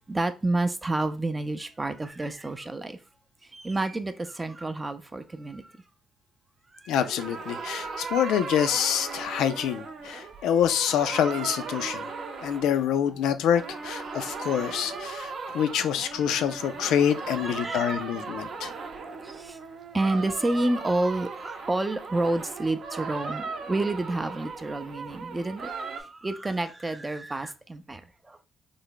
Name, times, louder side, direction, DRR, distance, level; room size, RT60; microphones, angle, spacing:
voice 1, 0.1-3.0 3.5-5.6 8.2-8.4 17.4-18.0 19.4-19.6 19.9-25.7 26.0-28.0, right 2 dB, 20° right, 0.4 m, -29 dB
voice 2, 6.9-12.0 12.4-18.7, left 9 dB, 85° left, 0.3 m, -26 dB
sound 1, 7.0-13.2 13.5-26.0, right 4 dB, 55° right, 0.6 m, -37 dB
3.3 x 2.1 x 3.8 m
cardioid pair, 90°, 0 cm